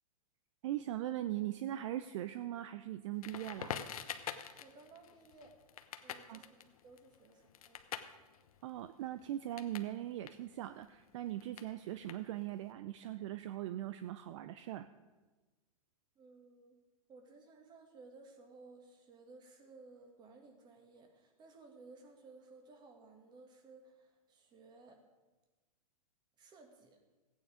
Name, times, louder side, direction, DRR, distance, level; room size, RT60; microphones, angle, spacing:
voice 1, 0.6-3.8 6.0-6.4 8.6-14.9, right 13 dB, 50° right, 11 dB, 0.5 m, -40 dB
Crackle, 3.2-9.9 10.2-12.6, left 9 dB, 70° left, 0.9 m, -46 dB
voice 2, 4.6-5.5 6.0-7.8 16.2-16.8 17.1-25.0 26.4-27.0, right 3 dB, 20° right, 4 dB, 1.9 m, -58 dB
15.0 x 9.2 x 5.0 m, 1.2 s
hypercardioid pair, 135°, 19 cm